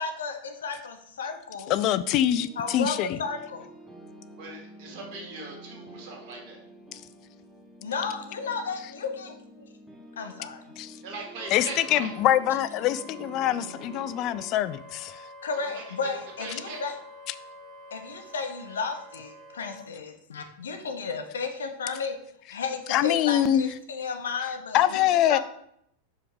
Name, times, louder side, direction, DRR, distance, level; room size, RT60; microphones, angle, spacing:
voice 1, 0.0-1.8 2.6-3.7 7.8-9.6 10.2-10.6 15.4-17.0 17.9-22.2 22.5-25.0 25.3-25.4, left 5 dB, 65° left, 0.9 m, -33 dB
voice 2, 1.7-3.2 10.8-10.9 11.5-15.2 22.9-23.7 24.7-25.4, left 12 dB, 40° left, 0.4 m, -24 dB
sound 1, 2.3-14.6, right 1 dB, 5° right, 1.0 m, -48 dB
voice 3, 4.4-6.6 11.0-12.1 15.6-15.8 16.4-16.8 25.0-25.1, right 3 dB, 40° right, 1.9 m, -40 dB
Wind instrument woodwind instrument, 11.4-19.9, equal, 15° left, 1.4 m, -47 dB
5.1 x 4.9 x 4.7 m
figure-of-eight pair, 90°, 0 cm